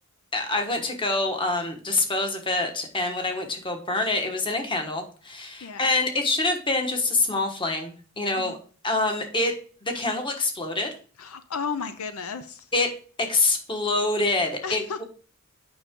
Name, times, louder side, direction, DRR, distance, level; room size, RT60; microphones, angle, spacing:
voice 1, 0.3-8.6 8.8-9.5 9.8-10.9 12.7-12.9 13.2-15.0, left 2 dB, 20° left, 1.3 m, -26 dB
voice 2, 5.6-5.9 8.4-8.5 11.2-12.7 14.6-15.0, left 5 dB, 75° left, 0.6 m, -33 dB
8.6 x 5.5 x 3.7 m
head